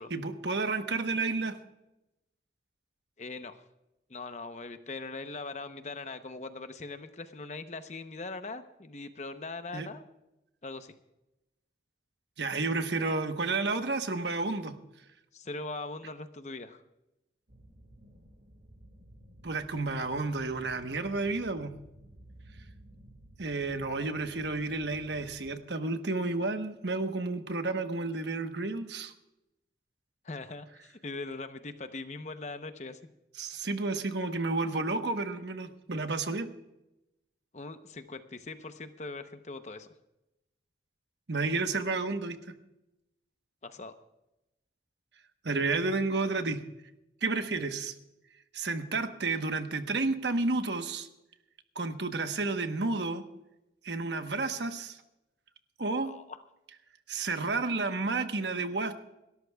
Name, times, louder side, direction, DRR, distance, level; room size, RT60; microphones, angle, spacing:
voice 1, 0.1-1.6 9.7-9.9 12.4-14.8 19.4-21.7 23.4-29.1 33.4-36.5 41.3-42.4 45.4-46.6 47.2-47.9 48.5-51.1 51.7-53.2 53.8-55.0 55.8-56.1 57.1-58.9, right 3 dB, 80° right, 7 dB, 1.1 m, -31 dB
voice 2, 3.2-3.6 4.1-10.0 10.6-10.9 15.3-16.8 30.2-30.7 31.0-33.0 37.5-39.9 43.6-44.0 56.0-56.4, left 3 dB, 40° left, 9 dB, 0.8 m, -41 dB
sound 1, 17.5-25.5, right 1 dB, 60° right, 2.3 m, -54 dB
29.0 x 13.0 x 2.3 m, 0.91 s
head